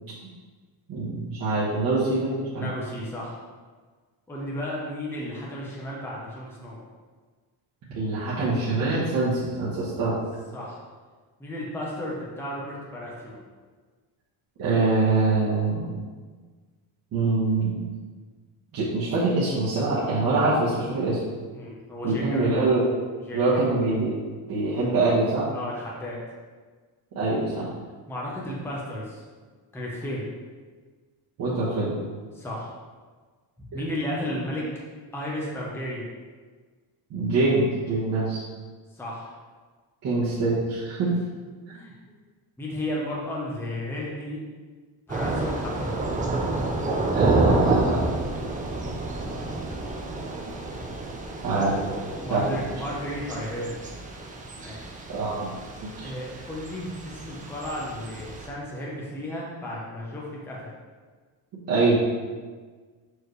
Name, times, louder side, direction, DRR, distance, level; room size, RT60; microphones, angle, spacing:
voice 1, 0.9-2.7 7.9-10.2 14.6-15.9 17.1-17.8 18.7-21.2 22.0-22.9 23.3-24.2 24.5-25.4 27.1-27.7 31.4-31.9 33.7-33.8 37.1-38.4 40.0-41.1 47.1-48.0 51.4-51.8 52.3-52.4 55.1-55.5 56.0-56.1 61.7-62.0, right 3 dB, 45° right, -9 dB, 1.2 m, -24 dB
voice 2, 2.5-3.4 4.3-6.8 10.5-10.8 11.4-13.4 21.5-22.5 23.3-23.7 25.5-26.2 28.1-29.2 29.7-30.3 32.3-32.7 33.7-34.6 35.1-36.1 39.0-39.3 41.0-41.1 41.7-41.9 42.6-44.4 45.1-46.0 52.2-53.8 54.6-55.0 56.0-60.6, left 1 dB, 5° left, -5 dB, 0.8 m, -33 dB
Thunder / Rain, 45.1-58.5, right 2 dB, 20° right, 0.4 m, -29 dB
6.3 x 4.8 x 3.2 m, 1.5 s
cardioid pair, 170°, 48 cm